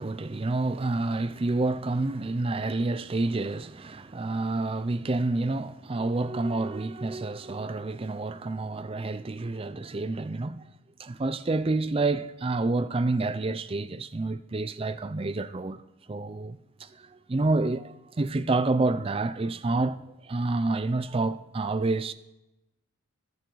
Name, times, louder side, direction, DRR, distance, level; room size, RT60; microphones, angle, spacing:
voice 1, 0.0-10.7 11.0-15.8 16.1-22.1, right 2 dB, 25° right, 0.4 m, -28 dB
14.5 x 12.0 x 3.9 m
head